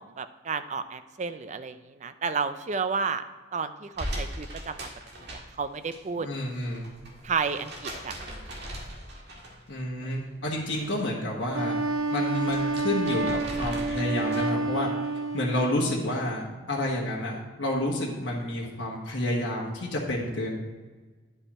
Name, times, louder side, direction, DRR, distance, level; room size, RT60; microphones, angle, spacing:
voice 1, 0.0-3.2 3.5-4.9 5.3-6.3 7.2-8.5 10.0-10.1, right 5 dB, 35° right, 11 dB, 0.4 m, -32 dB
sound 1, 3.9-6.0 6.3-9.8 10.1-11.1 11.4-14.6, right 1 dB, 60° right, 1.9 m, -39 dB
voice 2, 6.2-6.9 9.7-11.8 12.1-14.9 15.3-20.6, left 1 dB, 65° left, -4 dB, 1.5 m, -29 dB
Wind instrument woodwind instrument, 11.5-15.8, right 3 dB, 85° right, 0.6 m, -29 dB
10.5 x 5.4 x 4.2 m, 1.3 s
head